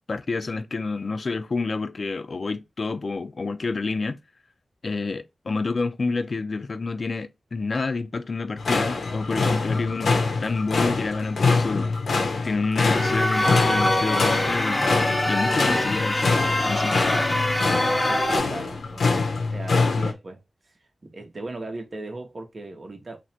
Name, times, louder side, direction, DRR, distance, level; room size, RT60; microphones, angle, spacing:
voice 1, 0.1-4.2 4.8-11.9 12.4-17.0, left 3 dB, 55° left, 0.4 m, -29 dB
sound 1, 8.6-20.1, left 3 dB, 85° left, 0.7 m, -25 dB
sound 2, 12.8-18.4, left 1 dB, 30° left, 1.0 m, -24 dB
voice 2, 18.1-20.4 21.0-23.2, right 2 dB, 50° right, 1.0 m, -37 dB
3.1 x 2.5 x 4.1 m
wide cardioid pair, 80°, 0 cm